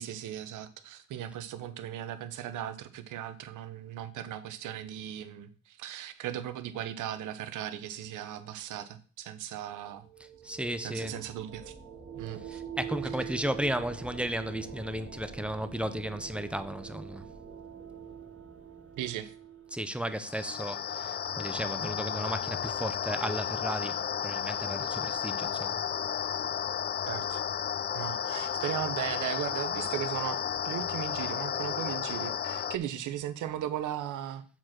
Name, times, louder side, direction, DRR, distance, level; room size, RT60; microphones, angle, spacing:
voice 1, 0.0-10.1 10.8-11.7 12.1-12.6 19.0-19.3 27.1-27.4 27.9-34.4, right 11 dB, 80° right, 0.9 m, -37 dB
sound 1, 9.7-20.3, right 7 dB, 45° right, 2.3 m, -44 dB
voice 2, 10.2-11.2 12.4-17.3 19.7-25.8, equal, 5° right, 0.8 m, -34 dB
sound 2, 20.2-32.8, left 8 dB, 35° left, 0.4 m, -33 dB
7.4 x 4.5 x 6.1 m
cardioid pair, 90°, 30 cm